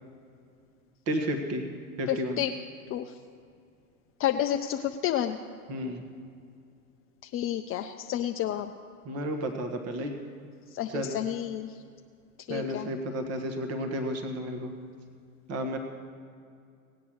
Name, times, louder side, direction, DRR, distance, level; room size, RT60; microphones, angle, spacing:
voice 1, 1.1-1.6 2.0-2.4 5.7-6.1 9.0-10.1 10.9-11.2 12.5-14.7 15.5-15.8, equal, 35° right, 5 dB, 1.5 m, -32 dB
voice 2, 2.1-2.5 2.9-3.1 4.2-5.4 7.2-8.7 10.7-11.8 12.5-12.9, left 11 dB, 30° left, 5 dB, 0.5 m, -30 dB
18.0 x 8.6 x 6.2 m, 2.4 s
hypercardioid pair, 100°, 44 cm